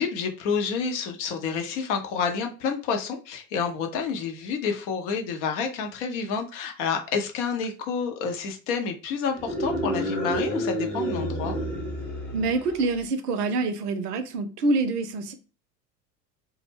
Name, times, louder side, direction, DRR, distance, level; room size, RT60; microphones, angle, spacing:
voice 1, 0.0-11.6, left 6 dB, 45° left, 0.6 m, -29 dB
sound 1, 9.3-13.0, right 1 dB, 5° left, 0.5 m, -30 dB
voice 2, 12.3-15.3, right 3 dB, 65° right, 0.6 m, -26 dB
2.2 x 2.0 x 3.2 m
figure-of-eight pair, 75°, 50 cm